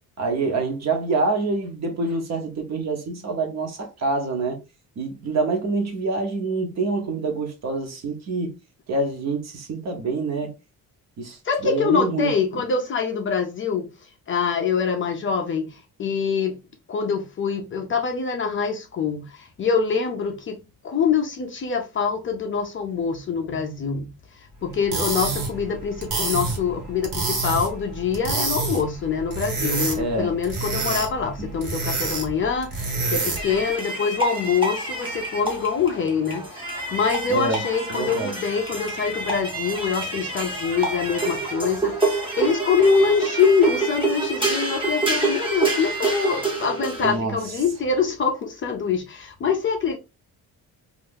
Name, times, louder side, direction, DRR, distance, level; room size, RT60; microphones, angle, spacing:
voice 1, 0.2-4.6 5.0-8.5 8.9-10.5 11.2-12.3 30.0-30.3 37.3-38.3 47.0-47.4, right 3 dB, 45° right, 0.9 m, -26 dB
voice 2, 11.4-13.9 14.3-16.6 16.9-24.1 24.6-50.0, left 6 dB, 35° left, 0.4 m, -24 dB
sound 1, 24.7-33.6, right 3 dB, 60° right, 1.3 m, -28 dB
sound 2, 33.4-47.2, right 3 dB, 15° right, 0.8 m, -27 dB
2.6 x 2.4 x 3.5 m
cardioid pair, 175°, 36 cm